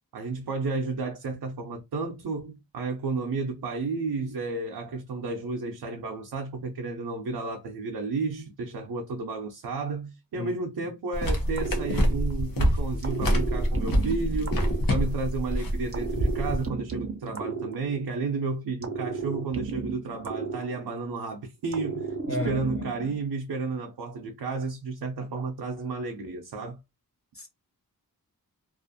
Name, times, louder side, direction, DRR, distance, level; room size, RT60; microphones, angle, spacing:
voice 1, 0.1-14.5 14.9-26.8, right 4 dB, 85° right, 0.5 m, -32 dB
sound 1, 11.1-16.7, equal, 65° left, 0.8 m, -26 dB
sound 2, 11.5-12.5 13.0-15.4 15.9-18.3 18.8-21.2 21.7-23.2, right 5 dB, 40° right, 0.5 m, -34 dB
voice 2, 22.3-23.1 27.3-27.5, left 2 dB, 40° left, 0.4 m, -34 dB
2.4 x 2.4 x 2.5 m
wide cardioid pair, 95°, 37 cm